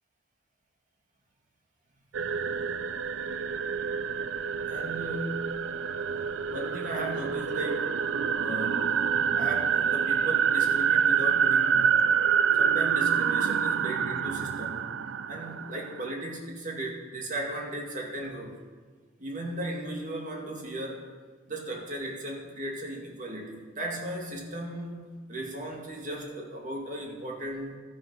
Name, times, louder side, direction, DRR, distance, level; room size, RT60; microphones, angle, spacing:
sound 1, 2.1-16.1, right 7 dB, 70° right, 0.4 m, -27 dB
voice 1, 4.7-5.6 6.5-7.9 8.4-12.1 12.5-14.9 15.3-18.5 19.2-21.1 21.5-27.8, right 1 dB, 40° right, 0 dB, 2.2 m, -36 dB
12.5 x 9.7 x 5.6 m, 1.5 s
head